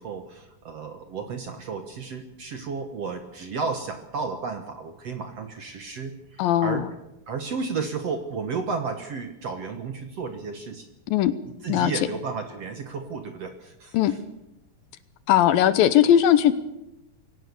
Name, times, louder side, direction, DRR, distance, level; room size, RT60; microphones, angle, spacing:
voice 1, 0.0-6.9 7.3-10.9 11.6-14.2, right 5 dB, 55° right, 6 dB, 1.8 m, -33 dB
voice 2, 6.4-6.9 11.1-11.3 11.7-11.9 13.9-14.1 15.3-16.5, left 11 dB, 75° left, 14 dB, 2.4 m, -19 dB
22.0 x 18.0 x 6.8 m, 0.92 s
omnidirectional pair, 4.4 m